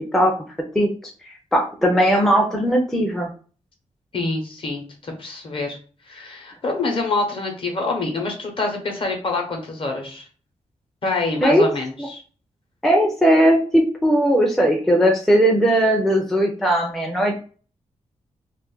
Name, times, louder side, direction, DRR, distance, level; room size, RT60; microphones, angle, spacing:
voice 1, 1.5-3.3 11.4-11.7 12.8-17.4, equal, 5° left, 1 dB, 0.4 m, -18 dB
voice 2, 4.1-5.8 6.1-10.3 11.0-12.2, left 3 dB, 45° left, 2 dB, 0.8 m, -26 dB
2.4 x 2.4 x 3.7 m, 0.39 s
wide cardioid pair, 180°, 13 cm